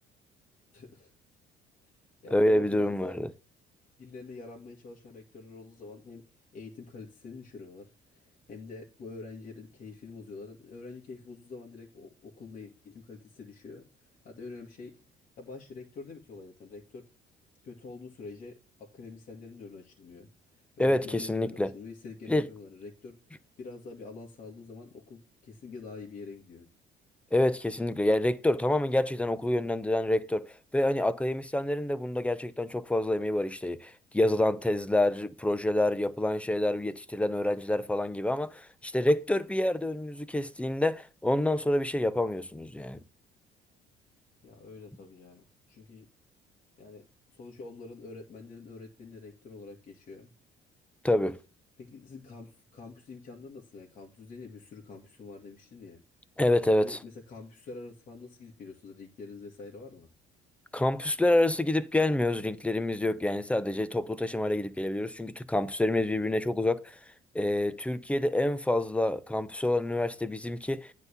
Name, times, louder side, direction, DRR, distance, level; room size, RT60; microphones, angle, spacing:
voice 1, 0.7-1.1 1.8-1.9 2.2-3.2 4.0-6.2 6.5-13.8 14.2-14.9 15.4-17.0 17.6-26.7 44.4-46.1 46.8-50.3 51.8-56.0 56.8-60.1, left 4 dB, 50° left, 2.1 m, -46 dB
voice 2, 2.3-3.3 20.8-21.7 22.3-22.5 27.3-43.0 51.0-51.4 56.4-57.0 60.7-67.0 67.3-70.9, left 1 dB, 5° left, 0.7 m, -27 dB
9.6 x 4.1 x 6.8 m
cardioid pair, 110°, 17 cm